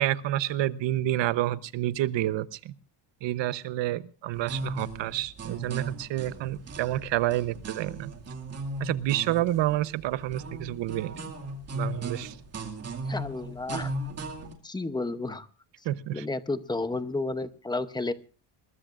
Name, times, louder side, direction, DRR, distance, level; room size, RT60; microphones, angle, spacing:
voice 1, 0.0-2.7 3.2-8.1 8.8-11.2 11.7-12.4 15.8-16.2, right 14 dB, 70° right, 15 dB, 1.0 m, -29 dB
sound 1, 4.3-14.5, right 1 dB, 30° right, 2.3 m, -37 dB
voice 2, 13.1-13.9 14.6-15.5 16.1-18.1, left 2 dB, 10° left, 11 dB, 0.7 m, -31 dB
21.5 x 21.5 x 2.5 m, 0.36 s
cardioid pair, 175°, 46 cm